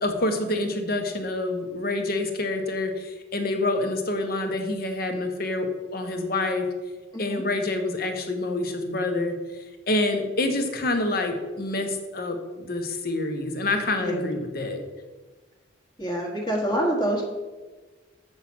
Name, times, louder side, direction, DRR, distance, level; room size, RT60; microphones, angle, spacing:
voice 1, 0.0-6.7 7.2-14.8, left 2 dB, 50° left, 5 dB, 1.1 m, -27 dB
voice 2, 14.0-14.3 16.0-17.2, right 1 dB, 20° left, -1 dB, 1.3 m, -26 dB
7.3 x 6.6 x 6.1 m, 1.3 s
head